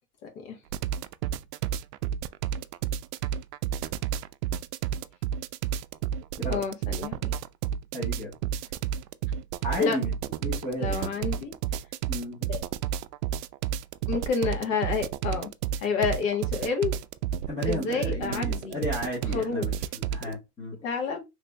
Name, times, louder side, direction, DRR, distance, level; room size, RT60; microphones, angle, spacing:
sound 1, 0.7-20.4, right 9 dB, 85° right, 0.5 m, -30 dB
voice 1, 6.5-7.3 9.8-10.0 10.8-11.5 12.5-12.6 14.1-15.5 15.8-16.9 17.7-18.8 19.3-19.7 20.8-21.2, left 5 dB, 55° left, 1.5 m, -29 dB
voice 2, 7.9-8.3 9.6-10.1 10.4-11.3 12.1-12.6 17.5-20.8, left 1 dB, 15° left, 0.8 m, -33 dB
3.2 x 2.7 x 3.3 m
supercardioid pair, 170°, 46 cm